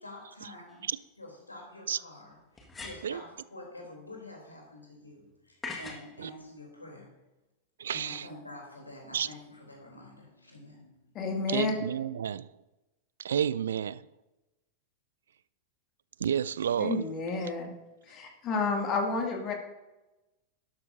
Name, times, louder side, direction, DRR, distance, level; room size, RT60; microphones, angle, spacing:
voice 1, 0.0-0.8 1.2-2.4 2.8-7.1 7.9-11.1, left 1 dB, 80° left, 3.1 m, -47 dB
sound 1, 0.7-0.8 2.6-3.2 5.6-6.1, left 3 dB, 15° left, 1.6 m, -41 dB
voice 2, 7.8-8.3 9.1-9.3 11.5-12.5 13.2-14.0 16.2-17.0, right 8 dB, 65° right, 0.3 m, -30 dB
voice 3, 11.1-11.7 16.8-17.7 18.1-19.5, left 4 dB, 35° left, 2.2 m, -30 dB
12.0 x 11.5 x 2.7 m
figure-of-eight pair, 90°, 0 cm